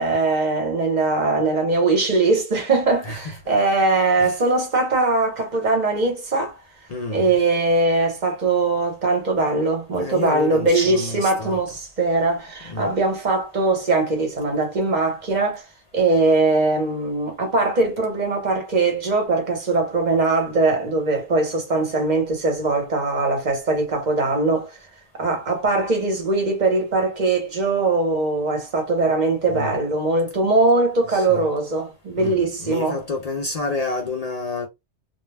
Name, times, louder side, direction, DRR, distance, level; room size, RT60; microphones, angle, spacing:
voice 1, 0.0-6.6 7.1-15.6 15.9-24.8 25.2-33.0, right 3 dB, 45° right, 1.0 m, -21 dB
voice 2, 3.0-3.5 4.2-4.4 6.9-7.3 10.0-11.6 12.6-13.0 29.5-29.8 31.1-31.5 32.2-34.7, left 3 dB, 55° left, 0.4 m, -29 dB
2.3 x 2.1 x 3.2 m
omnidirectional pair, 1.2 m